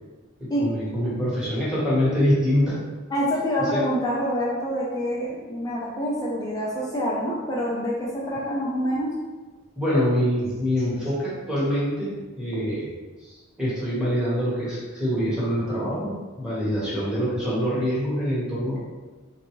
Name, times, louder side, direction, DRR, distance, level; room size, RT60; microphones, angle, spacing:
voice 1, 0.4-2.9 3.6-3.8 9.8-12.9 13.2-18.8, equal, 5° right, -10 dB, 1.1 m, -25 dB
voice 2, 3.1-9.1, equal, 20° left, -5 dB, 0.4 m, -26 dB
3.8 x 2.2 x 3.0 m, 1.3 s
head